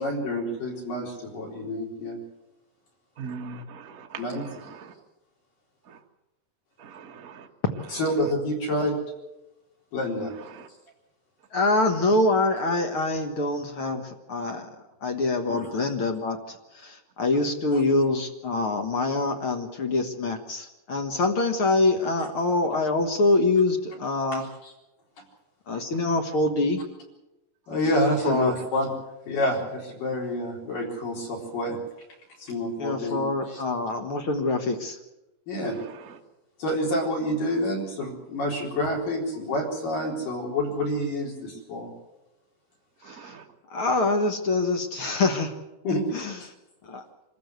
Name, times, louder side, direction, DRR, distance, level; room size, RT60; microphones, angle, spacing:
voice 1, 0.0-2.2 4.2-4.5 7.9-9.0 9.9-10.3 15.5-15.6 24.3-24.4 27.7-28.9 29.3-31.8 32.4-33.2 33.5-33.6 35.5-35.8 36.6-41.9 45.8-46.1, left 1 dB, 80° left, -1 dB, 5.8 m, -28 dB
voice 2, 3.2-4.2 4.7-4.9 5.9-6.0 6.8-7.5 43.0-43.4, right 5 dB, 45° right, 3 dB, 1.1 m, -40 dB
voice 3, 11.5-14.7 15.0-24.5 25.7-26.8 28.2-28.5 32.8-35.0 43.1-43.4 43.7-45.5 46.1-46.5 46.8-47.0, left 2 dB, 50° left, 4 dB, 1.9 m, -25 dB
25.5 x 14.5 x 8.1 m, 0.98 s
omnidirectional pair, 3.8 m